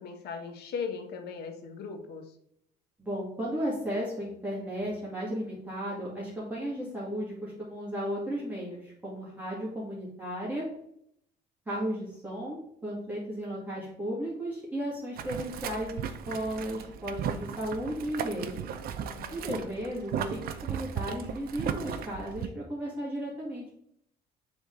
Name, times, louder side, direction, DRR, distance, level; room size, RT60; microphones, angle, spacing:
voice 1, 0.0-2.4 19.1-19.7, left 5 dB, 75° left, 7 dB, 1.0 m, -39 dB
voice 2, 3.0-10.7 11.7-18.7 19.3-23.7, equal, 10° right, -7 dB, 2.0 m, -35 dB
Boiling, 15.2-22.5, right 8 dB, 60° right, 0.6 m, -36 dB
6.9 x 3.6 x 3.8 m, 0.72 s
cardioid pair, 110°, 17 cm